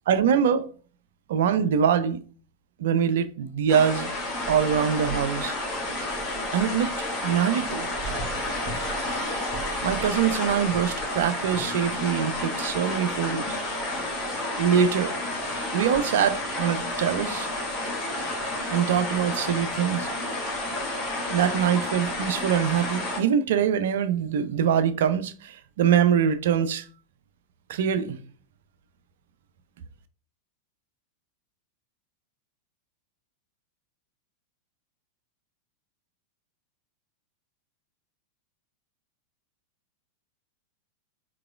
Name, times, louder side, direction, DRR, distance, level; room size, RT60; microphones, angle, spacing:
voice 1, 0.1-0.7 1.3-2.2 2.8-4.1 4.5-5.5 6.5-7.9 9.8-13.6 14.6-15.1 15.5-17.5 18.7-20.1 21.3-26.8 27.7-28.2, right 8 dB, 55° right, 0.4 m, -24 dB
sound 1, 3.7-23.2, left 1 dB, 25° left, 1.8 m, -30 dB
4.7 x 3.8 x 2.3 m
figure-of-eight pair, 90°, 0 cm